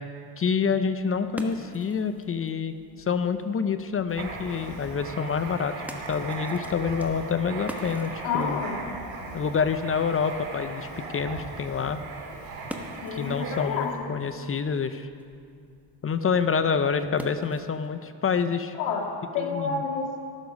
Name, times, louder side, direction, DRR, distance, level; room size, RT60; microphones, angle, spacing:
voice 1, 0.4-8.6 9.3-12.0 13.1-15.1 16.0-18.8 19.4-19.8, left 6 dB, 30° left, 10 dB, 0.6 m, -27 dB
sound 1, 0.8-17.9, equal, 5° right, 1.2 m, -47 dB
Writing, 4.1-13.9, right 3 dB, 85° right, 3.3 m, -38 dB
voice 2, 8.2-8.8 13.0-14.1 18.8-20.2, left 5 dB, 80° left, 0 dB, 2.2 m, -29 dB
18.0 x 7.1 x 5.3 m, 2.3 s
cardioid pair, 95°, 46 cm